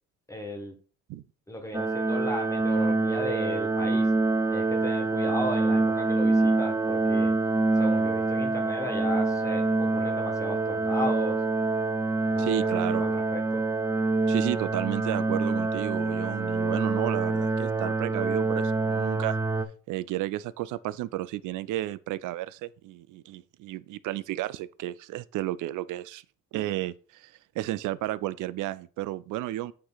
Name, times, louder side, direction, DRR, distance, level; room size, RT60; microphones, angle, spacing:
voice 1, 0.3-0.8 1.5-4.1 4.5-7.3 7.8-11.4 12.3-12.6 13.0-13.6, left 1 dB, 10° left, 1.5 m, -36 dB
sound 1, 1.7-19.6, right 3 dB, 10° right, 0.5 m, -26 dB
voice 2, 12.4-13.1 14.3-19.4 19.9-26.2 26.5-29.7, right 15 dB, 80° right, 0.5 m, -32 dB
8.6 x 3.1 x 4.0 m
cardioid pair, 90°, 30 cm